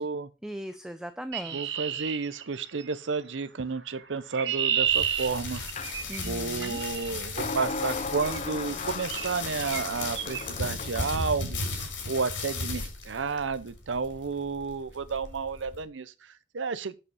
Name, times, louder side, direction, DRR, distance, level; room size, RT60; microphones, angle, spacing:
voice 1, 0.4-1.7 6.1-6.8, equal, 5° right, 0.5 m, -38 dB
Chirp tweet, 1.3-2.9 4.0-7.1 8.2-8.5 9.1-9.3 9.6-9.8 10.1-10.4, right 9 dB, 65° right, 1.1 m, -31 dB
voice 2, 1.5-5.6 6.2-17.0, right 4 dB, 80° right, 0.7 m, -32 dB
sound 1, 4.8-15.8, left 3 dB, 80° left, 4.0 m, -36 dB
sound 2, 5.8-6.0 7.4-11.1, left 4 dB, 40° left, 0.6 m, -36 dB
9.7 x 5.6 x 5.5 m
head